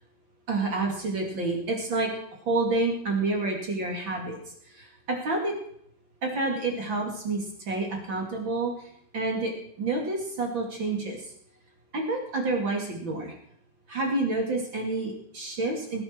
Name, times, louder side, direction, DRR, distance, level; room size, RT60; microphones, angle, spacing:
voice 1, 0.5-2.1 2.5-4.4 4.7-5.5 6.2-8.9 9.1-9.5 9.8-11.2 11.9-13.3 13.9-16.0, right 2 dB, 35° right, 1 dB, 2.3 m, -28 dB
18.5 x 10.5 x 4.5 m, 0.67 s
omnidirectional pair, 5.0 m